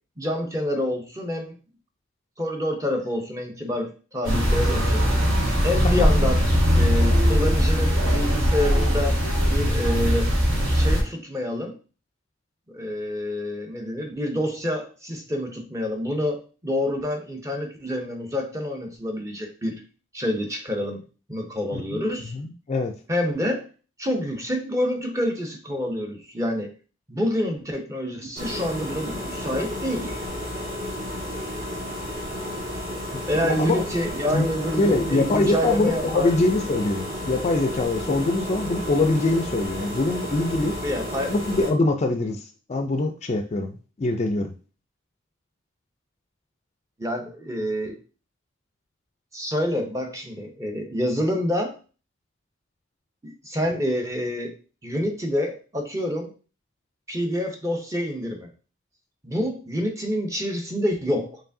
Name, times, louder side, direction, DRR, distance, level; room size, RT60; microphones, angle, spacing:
voice 1, 0.2-1.5 2.4-5.2 5.6-6.4 6.7-9.2 9.5-10.3 10.7-11.8 12.7-19.8 20.1-21.0 21.3-22.3 23.1-23.7 24.0-26.7 27.1-30.2 33.3-36.3 40.8-41.3 47.0-48.0 49.3-51.8 53.2-54.5 54.8-56.3 57.1-58.5 59.2-61.4, left 1 dB, 15° right, 3 dB, 0.6 m, -27 dB
sound 1, 4.2-11.0, equal, 75° right, 1.4 m, -20 dB
voice 2, 22.3-22.9 33.3-33.8 34.3-34.5 34.8-40.8 41.3-44.5, left 2 dB, 30° left, 6 dB, 0.3 m, -23 dB
sound 2, 28.4-41.7, left 1 dB, 40° right, 1.5 m, -32 dB
4.6 x 3.2 x 2.6 m, 0.36 s
head